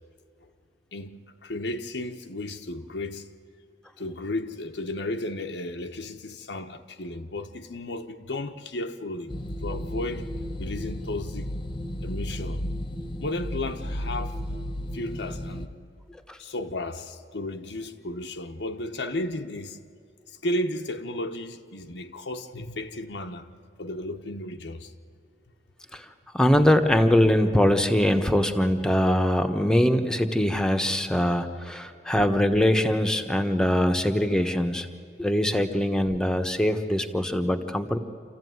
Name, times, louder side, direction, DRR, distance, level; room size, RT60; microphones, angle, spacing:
voice 1, 0.9-3.3 4.0-9.4 9.6-10.3 10.6-11.5 12.0-12.7 13.2-14.4 14.9-15.7 16.4-19.8 20.3-23.5 23.8-24.9, left 1 dB, 80° left, 1.1 m, -34 dB
sound 1, 9.3-15.7, equal, 25° left, 1.1 m, -33 dB
voice 2, 26.3-34.9 35.2-38.0, equal, 5° left, 1.1 m, -22 dB
27.5 x 14.5 x 9.5 m
head